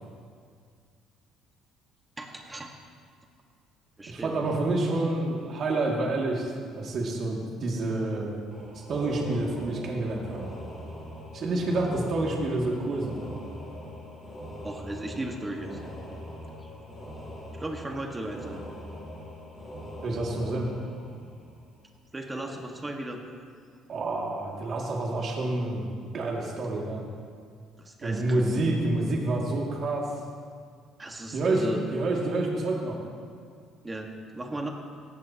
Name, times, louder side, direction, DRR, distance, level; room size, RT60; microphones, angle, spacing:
voice 1, 2.2-2.8 4.0-4.3 14.6-15.8 16.6-16.7 17.5-18.6 22.1-23.2 27.8-28.5 31.0-31.8 33.8-34.7, right 1 dB, 15° right, 2 dB, 1.6 m, -36 dB
voice 2, 4.1-8.3 8.9-10.5 11.3-13.3 20.0-20.7 23.9-25.9 26.1-27.1 28.0-30.1 31.3-31.6 31.9-33.0, right 2 dB, 45° right, -2 dB, 2.3 m, -28 dB
sound 1, 8.5-21.9, equal, 15° left, 3.1 m, -42 dB
17.5 x 15.0 x 2.9 m, 2.2 s
cardioid pair, 125°, 0 cm